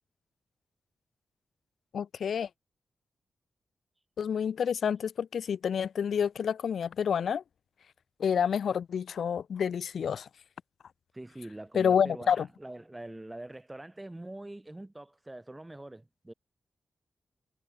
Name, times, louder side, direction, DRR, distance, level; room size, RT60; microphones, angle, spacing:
voice 1, 1.9-2.5 4.2-7.4 8.2-10.3 11.7-12.5, left 7 dB, 70° left, 0.9 m, -28 dB
voice 2, 11.1-16.3, right 1 dB, 15° right, 4.5 m, -44 dB
wide cardioid pair, 105°, 0 cm